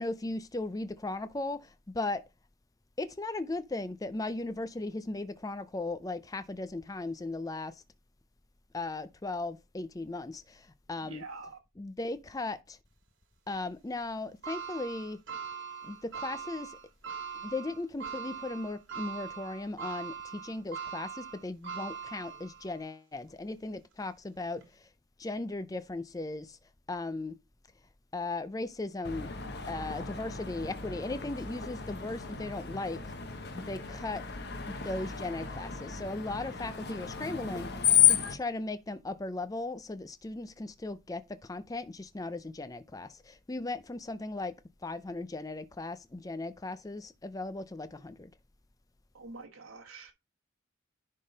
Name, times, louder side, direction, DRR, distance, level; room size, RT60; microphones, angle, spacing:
voice 1, 0.0-2.2 3.0-7.8 8.7-11.2 11.8-12.8 13.5-15.2 15.8-16.8 17.3-24.9 25.2-26.6 26.9-27.4 28.1-29.3 29.7-33.1 33.5-34.2 34.7-48.3, left 2 dB, 15° left, 0.4 m, -37 dB
voice 2, 11.0-11.6 49.1-50.1, right 3 dB, 85° right, 1.2 m, -46 dB
sound 1, 14.4-22.8 23.3-23.4 24.5-24.6, right 6 dB, 60° right, 2.4 m, -41 dB
Screech, 29.0-38.4, left 9 dB, 50° left, 0.9 m, -32 dB
10.0 x 3.7 x 3.9 m
head